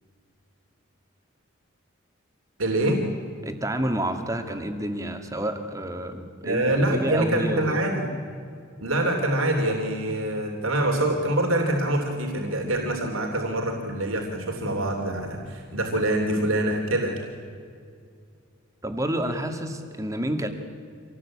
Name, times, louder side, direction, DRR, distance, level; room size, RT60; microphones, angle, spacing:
voice 1, 2.6-3.0 6.4-8.0 8.8-17.1, right 1 dB, 80° right, 1 dB, 3.3 m, -25 dB
voice 2, 3.4-7.8 18.8-20.5, right 1 dB, 15° right, 6 dB, 2.0 m, -29 dB
26.0 x 18.5 x 8.7 m, 2.3 s
head